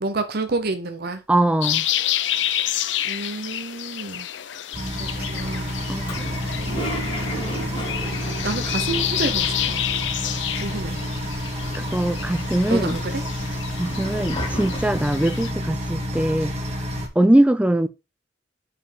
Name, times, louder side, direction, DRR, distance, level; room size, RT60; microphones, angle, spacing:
voice 1, 0.0-1.2 3.0-4.3 4.9-5.8 6.5-7.9 8.2-9.8 10.5-11.0 12.7-13.2 14.2-14.4, right 3 dB, 55° right, 0.8 m, -30 dB
voice 2, 1.3-1.9 5.9-6.2 8.0-8.1 11.7-13.0 13.8-16.5 17.2-17.9, right 1 dB, 5° right, 0.5 m, -21 dB
sound 1, 1.6-15.5, left 12 dB, 70° left, 0.5 m, -29 dB
sound 2, 4.7-17.1, equal, 35° right, 1.8 m, -29 dB
Toilet flush, 6.0-10.4 10.7-10.8 11.0-11.8 12.3-15.2, equal, 30° left, 2.2 m, -35 dB
5.6 x 4.4 x 5.0 m
head